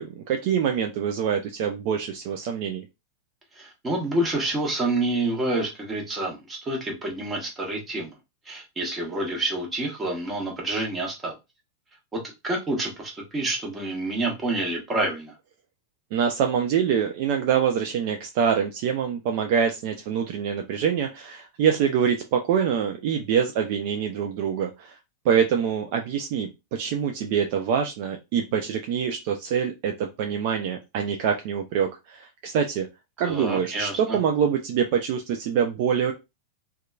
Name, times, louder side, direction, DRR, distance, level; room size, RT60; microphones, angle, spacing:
voice 1, 0.0-2.9 16.1-24.9 25.3-32.9 33.2-36.1, right 7 dB, 45° right, 4 dB, 0.4 m, -25 dB
voice 2, 3.5-8.1 8.5-11.3 12.1-15.3 33.2-34.2, right 2 dB, 15° right, 0 dB, 1.0 m, -28 dB
2.8 x 2.2 x 2.3 m, 0.24 s
figure-of-eight pair, 90°, 0 cm